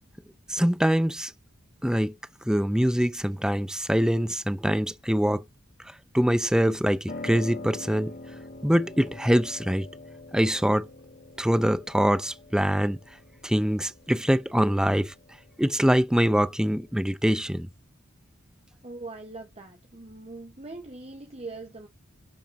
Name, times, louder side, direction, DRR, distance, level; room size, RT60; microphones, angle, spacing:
voice 1, 0.5-1.3 1.8-2.1 2.4-5.4 5.8-8.1 8.6-9.9 10.3-10.9 11.4-13.0 13.4-15.1 15.6-17.7, equal, 5° right, 0.7 m, -24 dB
Piano, 7.1-17.0, left 2 dB, 55° left, 3.8 m, -44 dB
voice 2, 18.8-21.9, right 3 dB, 30° right, 1.5 m, -41 dB
12.0 x 4.3 x 7.1 m
head